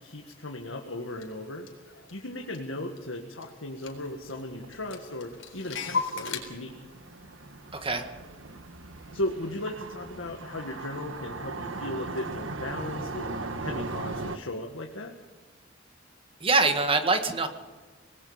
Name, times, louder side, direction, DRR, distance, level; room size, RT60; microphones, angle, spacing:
voice 1, 0.0-1.7 2.1-6.7 9.1-13.3 13.6-15.1, left 1 dB, 85° left, 2 dB, 1.9 m, -36 dB
Clock, 1.2-1.3 1.7-3.1 3.4-3.5 3.8-4.4 4.7-6.4, left 5 dB, 70° left, 3.9 m, -35 dB
sound 1, 3.9-14.4, right 3 dB, 75° right, 1.5 m, -39 dB
voice 2, 7.7-8.1 16.4-17.5, right 3 dB, 30° right, 6 dB, 1.8 m, -24 dB
26.5 x 19.5 x 5.1 m, 1.3 s
head